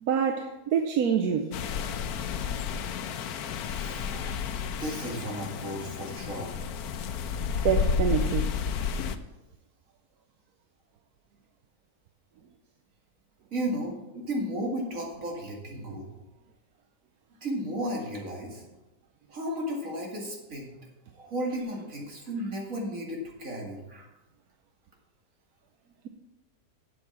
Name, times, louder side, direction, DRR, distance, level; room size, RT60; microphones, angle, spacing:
voice 1, 0.0-1.5 7.6-8.6, right 7 dB, 80° right, 1.2 m, -26 dB
sound 1, 1.5-9.2, left 6 dB, 80° left, 1.2 m, -31 dB
voice 2, 3.7-6.5 13.5-16.1 17.4-18.6 19.3-20.7 21.1-24.1, equal, 60° right, 2.6 m, -34 dB
7.9 x 7.7 x 7.2 m
omnidirectional pair, 1.6 m